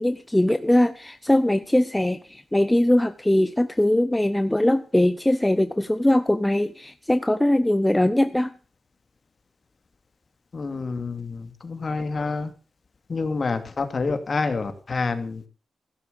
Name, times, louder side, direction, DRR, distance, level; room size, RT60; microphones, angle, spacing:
voice 1, 0.0-8.5, left 1 dB, 10° left, 11 dB, 0.7 m, -21 dB
voice 2, 10.5-12.5 13.1-15.5, left 4 dB, 40° left, 8 dB, 2.6 m, -28 dB
16.0 x 12.0 x 6.9 m, 0.39 s
wide cardioid pair, 160°, 0 cm